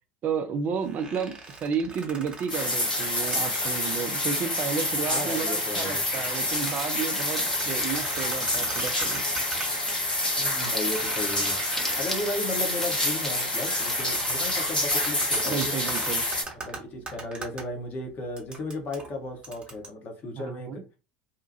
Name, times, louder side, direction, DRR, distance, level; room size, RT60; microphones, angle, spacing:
voice 1, 0.2-9.2 15.5-16.3 20.4-20.8, right 6 dB, 40° right, 0.5 m, -32 dB
sound 1, 0.8-4.0 4.4-4.5 5.0-5.3 5.7-10.1 10.4-10.5 10.9-17.6 18.4-19.9, right 3 dB, 20° right, 1.0 m, -40 dB
sound 2, 2.5-16.4, left 1 dB, 90° left, 1.0 m, -28 dB
voice 2, 5.1-6.2 10.4-11.6 12.0-15.6 16.6-20.8, left 2 dB, 40° left, 1.0 m, -35 dB
sound 3, 6.5-14.3, left 1 dB, 5° left, 1.1 m, -38 dB
2.8 x 2.3 x 2.6 m
figure-of-eight pair, 70°, 5 cm